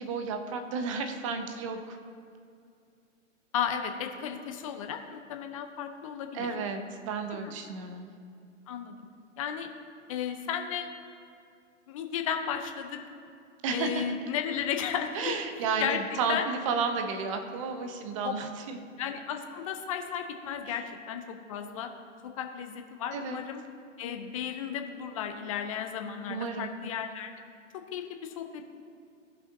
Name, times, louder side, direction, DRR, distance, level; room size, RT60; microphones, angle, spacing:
voice 1, 0.0-2.0 6.3-8.1 13.6-14.1 15.1-18.8 20.7-20.8 23.1-23.4 26.3-26.7, right 5 dB, 25° right, 7 dB, 0.6 m, -32 dB
voice 2, 3.5-6.5 7.4-7.6 8.7-9.0 9.4-9.7 10.1-10.9 11.9-13.0 13.7-15.1 15.8-16.0 16.3-16.5 18.2-18.3 19.0-21.9 22.4-23.6 24.0-27.3 27.7-28.6, left 8 dB, 25° left, 5 dB, 0.6 m, -34 dB
15.5 x 5.7 x 2.7 m, 2.4 s
figure-of-eight pair, 120°, 39 cm